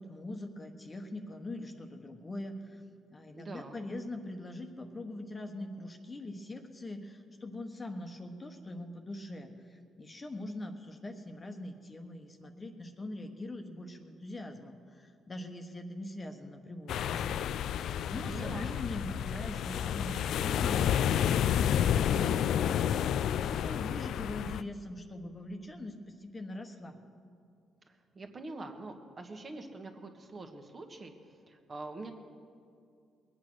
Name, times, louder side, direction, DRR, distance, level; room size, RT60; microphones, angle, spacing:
voice 1, 0.0-2.8 3.1-27.0, left 1 dB, 30° left, 5 dB, 1.3 m, -42 dB
voice 2, 3.3-3.8 18.3-18.7 27.9-31.1 31.5-32.1, right 3 dB, 40° right, 4 dB, 1.5 m, -44 dB
sound 1, 16.9-24.6, left 9 dB, 75° left, 0.4 m, -30 dB
21.5 x 8.7 x 6.3 m, 2.4 s
cardioid pair, 90°, 0 cm